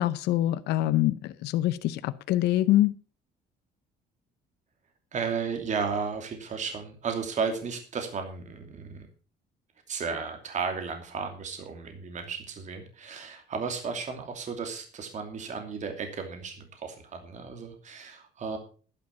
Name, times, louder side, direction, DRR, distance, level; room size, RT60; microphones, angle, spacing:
voice 1, 0.0-2.9, left 14 dB, 85° left, 13 dB, 0.7 m, -25 dB
voice 2, 5.1-9.1 9.9-18.6, right 5 dB, 45° right, 5 dB, 2.8 m, -34 dB
11.5 x 10.5 x 5.8 m, 0.39 s
cardioid pair, 110°, 17 cm